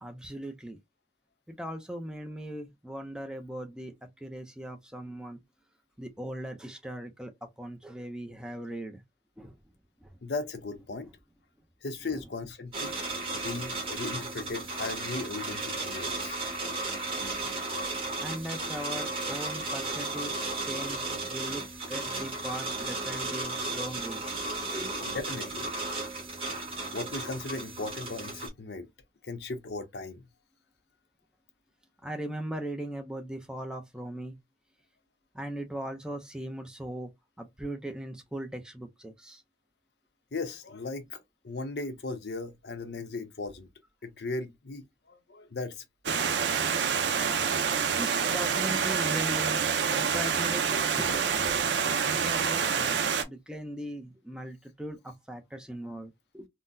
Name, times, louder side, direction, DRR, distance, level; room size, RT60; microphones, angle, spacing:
voice 1, 0.0-0.8 1.5-5.4 6.0-9.0 9.4-9.6 10.0-10.1 12.1-12.2 16.9-17.0 18.2-24.2 24.6-24.9 32.0-34.4 35.3-37.1 37.4-39.4 48.0-49.6 49.9-51.6 52.0-52.9 53.3-56.5, right 1 dB, 5° right, 0.5 m, -39 dB
voice 2, 10.2-11.1 11.8-12.9 13.4-16.4 25.0-25.7 26.9-28.9 29.2-30.2 40.3-41.2 41.4-43.7 44.0-46.2, left 3 dB, 75° left, 0.7 m, -37 dB
sound 1, 12.7-28.5, right 2 dB, 30° right, 1.3 m, -34 dB
Stream, 46.1-53.2, right 6 dB, 80° right, 0.6 m, -27 dB
3.8 x 2.1 x 2.6 m
head